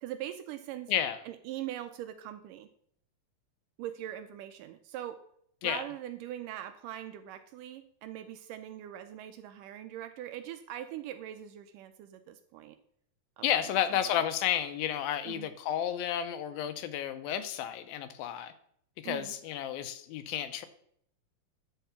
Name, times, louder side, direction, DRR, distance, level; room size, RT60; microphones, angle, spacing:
voice 1, 0.0-0.9 1.3-2.7 3.8-5.2 5.6-12.8 13.4-13.7 15.3-15.5 19.0-19.3, right 12 dB, 80° right, 9 dB, 2.0 m, -42 dB
voice 2, 13.4-18.5 19.0-20.7, left 10 dB, 90° left, 10 dB, 2.6 m, -31 dB
11.5 x 4.6 x 7.1 m, 0.67 s
omnidirectional pair, 4.2 m